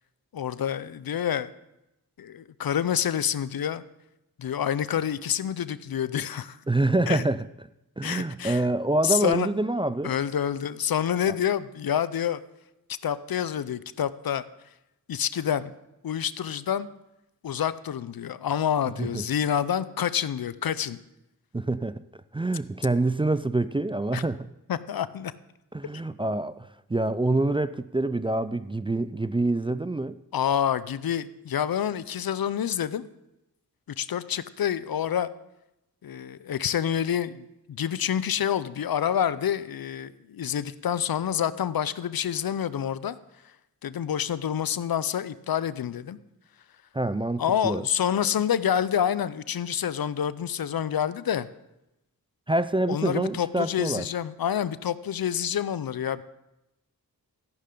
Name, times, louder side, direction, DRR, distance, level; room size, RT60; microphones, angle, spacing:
voice 1, 0.3-1.5 2.2-3.8 4.4-6.6 7.1-7.2 8.0-8.6 9.0-9.5 10.0-12.4 13.0-14.4 15.1-15.7 16.0-16.9 17.4-21.0 24.1-24.2 24.7-25.3 30.3-33.1 34.0-35.3 36.0-43.2 43.8-46.2 47.4-51.5 52.9-56.2, left 9 dB, 65° left, 0.6 m, -27 dB
voice 2, 6.7-7.5 8.0-10.1 11.2-11.3 19.0-19.3 21.5-24.5 25.7-30.2 46.9-47.8 52.5-54.1, right 2 dB, 15° right, 0.4 m, -26 dB
13.5 x 11.0 x 3.8 m
cardioid pair, 40°, 38 cm